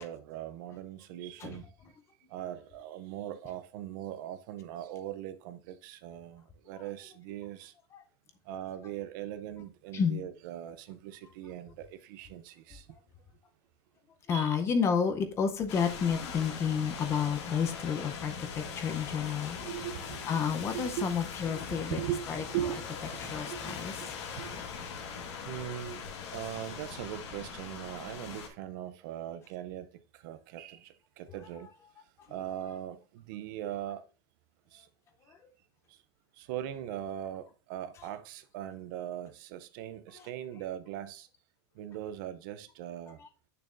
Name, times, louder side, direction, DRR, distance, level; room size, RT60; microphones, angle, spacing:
voice 1, 0.0-1.7 2.3-7.7 8.4-13.0 14.3-14.6 19.6-21.1 21.5-23.7 24.4-24.6 25.4-34.0 34.7-34.9 35.9-36.0 36.3-41.3 41.7-43.2, right 11 dB, 45° right, 0.5 m, -40 dB
voice 2, 14.3-19.7 20.3-22.0 22.3-22.4 23.2-23.9 35.3-35.4 40.1-40.2 43.2-43.3, left 6 dB, 20° left, 0.6 m, -30 dB
sound 1, 15.7-28.5, left 6 dB, 75° left, 2.0 m, -41 dB
8.5 x 6.6 x 2.5 m
supercardioid pair, 175°, 15 cm